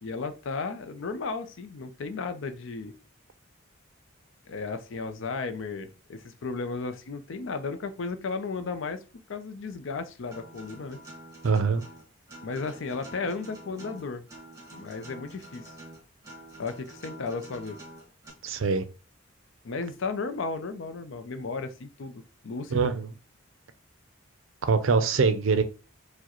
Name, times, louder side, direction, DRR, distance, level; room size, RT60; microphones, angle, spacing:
voice 1, 0.0-2.9 4.5-9.0 9.3-11.0 12.4-14.3 14.7-15.7 16.6-17.8 19.6-22.9, left 4 dB, 65° left, 0.5 m, -34 dB
Acoustic guitar, 10.3-18.3, right 1 dB, 15° right, 1.4 m, -47 dB
voice 2, 11.4-11.8 18.4-18.8 22.7-23.1 24.6-25.6, right 5 dB, 70° right, 0.5 m, -23 dB
4.5 x 2.1 x 2.9 m
head